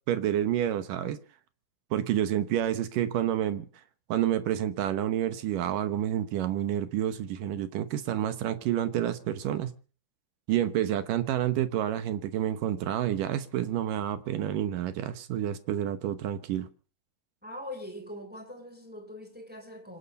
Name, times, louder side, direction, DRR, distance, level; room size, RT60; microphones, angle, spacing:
voice 1, 0.1-1.2 1.9-3.7 4.1-9.7 10.5-16.7, right 11 dB, 70° right, 2.1 m, -29 dB
voice 2, 17.4-20.0, left 1 dB, ahead, 3.2 m, -42 dB
26.5 x 9.2 x 5.3 m
omnidirectional pair, 4.9 m